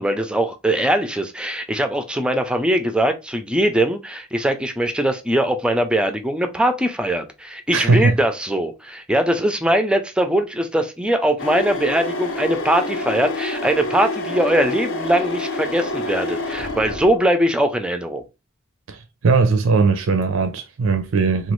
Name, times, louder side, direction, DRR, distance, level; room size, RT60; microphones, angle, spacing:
voice 1, 0.0-18.2, right 1 dB, 5° right, 0.4 m, -21 dB
voice 2, 7.7-8.2 18.9-19.0 19.2-21.5, right 4 dB, 75° right, 0.4 m, -18 dB
sound 1, 11.4-17.3, left 2 dB, 60° left, 0.5 m, -27 dB
3.0 x 2.3 x 3.0 m
head